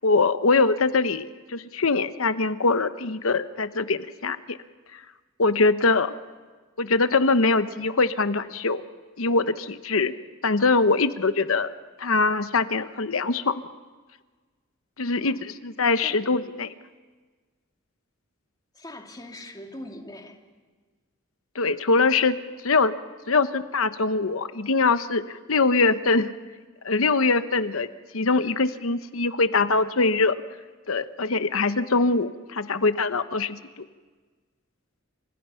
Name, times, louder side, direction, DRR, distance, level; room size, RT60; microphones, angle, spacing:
voice 1, 0.0-4.6 5.4-6.1 6.8-8.8 9.2-10.1 10.4-11.7 12.0-13.6 15.0-16.7 21.5-22.4 22.6-22.9 23.3-26.3 26.8-27.9 28.1-30.4 30.9-33.6, left 3 dB, 75° left, 11 dB, 1.0 m, -23 dB
voice 2, 15.1-15.5 16.0-16.2 18.7-20.4, left 1 dB, 20° left, 2 dB, 2.7 m, -42 dB
30.0 x 26.0 x 5.7 m, 1.4 s
head